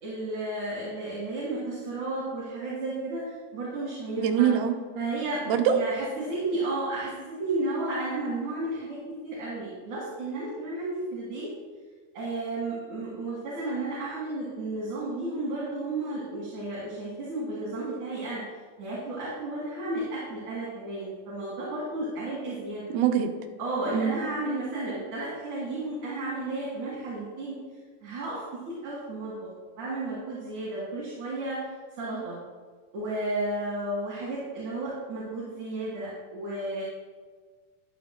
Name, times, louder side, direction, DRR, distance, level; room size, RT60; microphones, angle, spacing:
voice 1, 0.0-4.5 4.9-5.4 5.7-9.0 9.2-11.5 12.1-18.4 18.8-22.8 23.6-27.5 28.0-29.5 29.8-31.6 32.0-32.4 32.9-36.8, right 2 dB, 55° right, -7 dB, 3.0 m, -33 dB
voice 2, 4.2-4.7 5.5-5.7 22.9-23.3 23.9-24.2, right 9 dB, 75° right, 3 dB, 2.5 m, -23 dB
12.5 x 10.5 x 2.2 m, 1.5 s
omnidirectional pair, 4.8 m